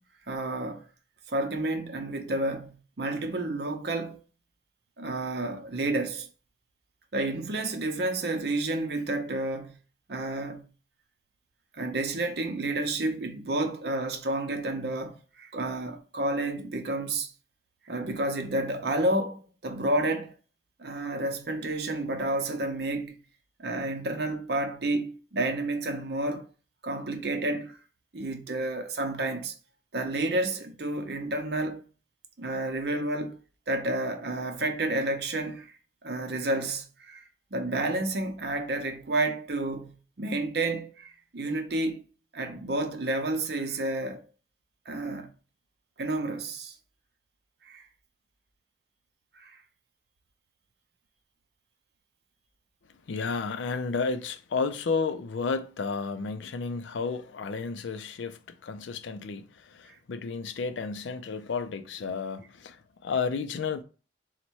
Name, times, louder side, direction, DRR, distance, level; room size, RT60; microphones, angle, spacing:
voice 1, 0.3-0.9 1.3-4.2 5.0-6.3 7.1-9.8 10.1-10.7 11.7-17.3 17.9-20.3 20.8-23.2 23.6-26.5 26.8-27.8 28.1-29.5 29.9-31.8 32.4-33.4 33.7-35.7 36.0-37.2 37.5-42.0 42.3-44.2 44.9-45.3 46.0-46.7 47.6-47.9 49.4-49.6, right 2 dB, 60° right, 0.7 m, -30 dB
voice 2, 53.1-63.8, left 4 dB, 80° left, 0.4 m, -32 dB
4.0 x 2.1 x 4.5 m
head